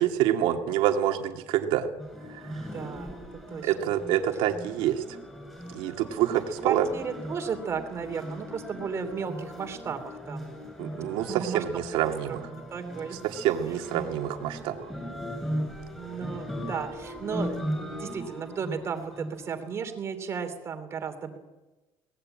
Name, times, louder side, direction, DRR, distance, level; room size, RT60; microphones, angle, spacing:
voice 1, 0.0-1.9 2.3-2.4 3.6-5.0 5.7-6.9 10.8-12.4 13.2-14.9, right 11 dB, 90° right, 4 dB, 2.5 m, -27 dB
sound 1, 2.0-19.8, equal, 5° left, 7.7 m, -38 dB
voice 2, 2.4-3.9 6.3-10.6 10.9-11.6 12.3-13.2 13.7-13.8 16.0-21.4, right 6 dB, 30° right, 7 dB, 2.8 m, -35 dB
23.5 x 18.5 x 8.9 m, 1.1 s
cardioid pair, 170°, 9 cm